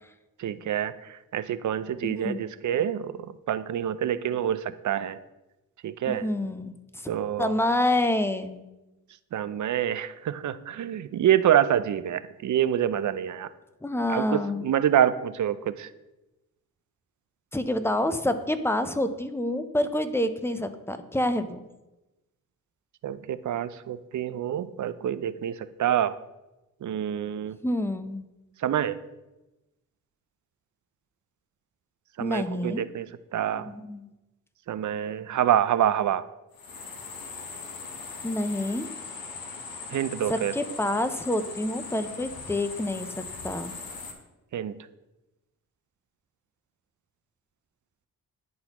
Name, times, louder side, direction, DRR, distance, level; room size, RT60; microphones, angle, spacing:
voice 1, 0.4-5.2 5.8-6.3 7.1-7.5 9.3-13.5 14.1-15.9 23.0-26.2 26.8-27.6 28.6-29.0 32.2-33.7 34.7-36.2 39.9-40.6 44.5-44.8, right 10 dB, 55° right, 14 dB, 0.4 m, -27 dB
voice 2, 2.0-2.4 6.1-6.7 7.4-8.6 13.8-14.7 17.5-21.6 27.6-28.2 32.2-32.8 33.6-34.0 38.2-38.9 40.3-43.7, left 1 dB, 5° left, 10 dB, 0.5 m, -27 dB
sound 1, 36.5-44.1, left 4 dB, 75° left, 1.0 m, -40 dB
10.5 x 4.0 x 2.9 m, 1.0 s
cardioid pair, 55°, 36 cm